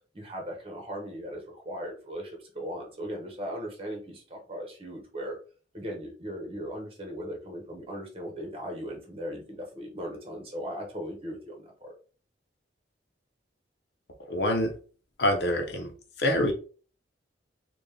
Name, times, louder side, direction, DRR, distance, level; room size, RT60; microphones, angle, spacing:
voice 1, 0.1-5.4 5.7-11.9, equal, 30° right, 1 dB, 1.1 m, -38 dB
voice 2, 14.3-14.7 15.2-15.9 16.2-16.5, left 1 dB, 65° left, 5 dB, 0.8 m, -25 dB
4.2 x 2.4 x 3.4 m, 0.39 s
head